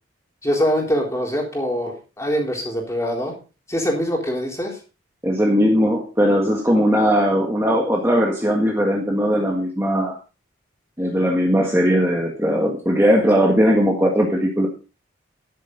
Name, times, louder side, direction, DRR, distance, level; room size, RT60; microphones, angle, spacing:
voice 1, 0.4-3.3 3.7-4.8, equal, 15° left, 0 dB, 3.8 m, -23 dB
voice 2, 5.2-10.1 11.0-14.7, equal, 15° right, -1 dB, 1.7 m, -19 dB
12.5 x 11.0 x 4.0 m, 0.33 s
head